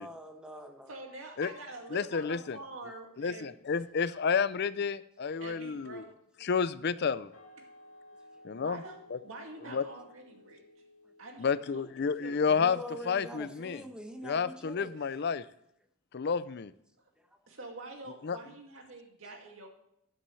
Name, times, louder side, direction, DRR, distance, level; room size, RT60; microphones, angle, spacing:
voice 1, 0.0-0.9 12.5-14.9, equal, 5° right, 5 dB, 1.1 m, -44 dB
voice 2, 0.9-3.5 5.4-6.0 8.5-10.6 11.2-12.7 14.9-15.3 17.0-17.1 17.5-19.7, right 2 dB, 65° right, 2 dB, 2.2 m, -46 dB
voice 3, 1.9-2.6 3.2-6.0 6.4-7.3 8.4-8.8 9.1-9.2 9.7-9.8 11.4-12.8 13.1-13.8 14.2-15.4 16.1-16.7 18.2-18.4, left 5 dB, 50° left, 16 dB, 0.5 m, -30 dB
sound 1, 7.3-12.8, left 1 dB, 75° left, 2.7 m, -57 dB
13.0 x 10.5 x 3.3 m, 0.76 s
head